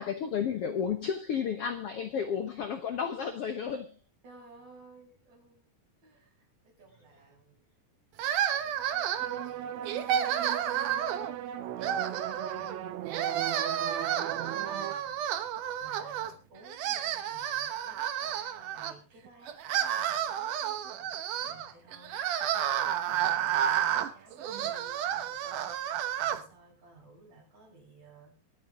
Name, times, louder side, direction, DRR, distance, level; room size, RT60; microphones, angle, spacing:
voice 1, 0.0-4.0, left 7 dB, 75° left, 1.3 m, -32 dB
voice 2, 4.2-5.7 6.0-7.7 8.6-11.3 11.8-28.4, right 3 dB, 45° right, 8.6 m, -56 dB
sound 1, 8.2-9.5 9.9-11.3 11.8-12.8 13.1-16.3 16.6-18.9 19.5-26.4, right 10 dB, 65° right, 2.4 m, -31 dB
sound 2, 9.2-15.0, right 12 dB, 85° right, 1.5 m, -38 dB
24.5 x 9.0 x 3.7 m
omnidirectional pair, 4.4 m